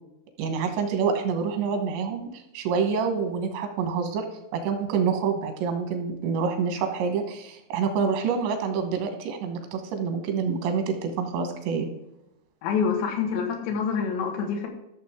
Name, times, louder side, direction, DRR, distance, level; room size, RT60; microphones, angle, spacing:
voice 1, 0.4-4.3 4.5-11.9, right 6 dB, 90° right, 5 dB, 3.5 m, -27 dB
voice 2, 12.6-14.7, left 6 dB, 85° left, 2 dB, 3.6 m, -26 dB
13.5 x 6.9 x 3.6 m, 0.88 s
omnidirectional pair, 5.0 m